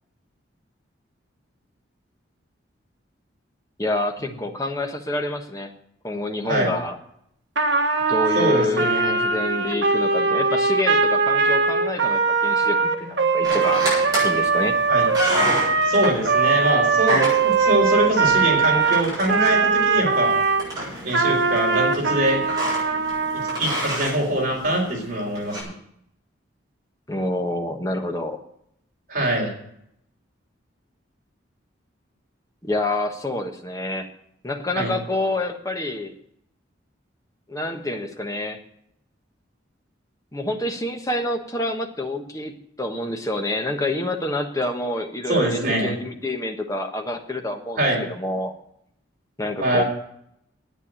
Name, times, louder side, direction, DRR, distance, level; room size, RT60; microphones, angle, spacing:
voice 1, 3.8-5.7 6.0-7.0 8.1-13.8 14.2-14.8 27.1-28.4 32.6-34.1 34.4-36.1 37.5-38.6 40.3-48.5 49.4-49.8, left 1 dB, 20° left, 4 dB, 1.3 m, -27 dB
Trumpet, 7.6-20.6 21.1-23.6, right 4 dB, 65° right, 1.4 m, -21 dB
voice 2, 8.3-9.2 14.9-15.1 15.9-20.3 21.0-22.4 23.3-25.7 29.1-29.5 34.8-34.9 45.3-45.9 47.8-48.0 49.6-49.8, right 1 dB, 45° right, -1 dB, 3.9 m, -23 dB
sound 1, 13.4-25.6, right 1 dB, 20° right, 7.6 m, -30 dB
9.8 x 9.5 x 8.9 m, 0.73 s
head